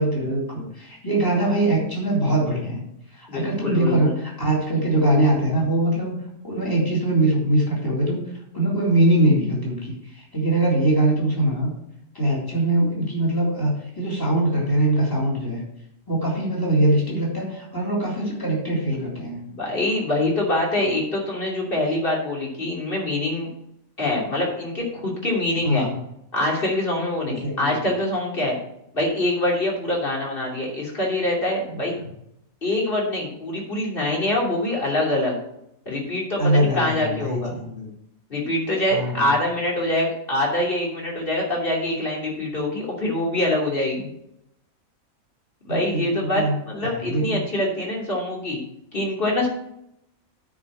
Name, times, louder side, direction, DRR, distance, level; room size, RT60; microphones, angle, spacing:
voice 1, 0.0-2.8 3.1-6.1 6.4-8.2 8.5-11.7 12.1-13.7 14.0-15.6 16.1-19.4 25.6-25.9 27.2-27.8 36.4-37.9 38.9-39.3 45.7-46.5 46.8-47.4, right 1 dB, 15° left, -4 dB, 3.3 m, -22 dB
voice 2, 3.3-4.1 19.5-23.5 24.0-25.9 26.3-28.6 28.9-31.9 32.6-35.4 35.8-37.5 38.3-44.1 45.6-48.6 48.9-49.5, left 1 dB, 40° left, -3 dB, 3.2 m, -24 dB
9.5 x 5.2 x 7.3 m, 0.79 s
omnidirectional pair, 1.5 m